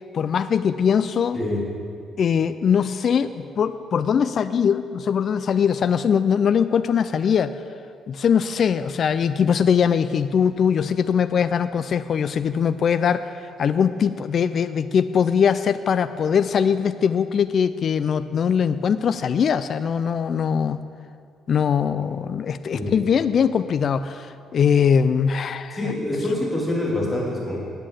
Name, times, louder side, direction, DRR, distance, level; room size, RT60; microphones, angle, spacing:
voice 1, 0.1-1.4 2.2-7.6 8.1-20.8 21.5-25.9, left 7 dB, 45° left, 12 dB, 0.3 m, -21 dB
voice 2, 25.7-27.6, left 1 dB, 10° left, -4 dB, 2.5 m, -25 dB
9.3 x 8.7 x 7.7 m, 2.3 s
cardioid pair, 140°, 0 cm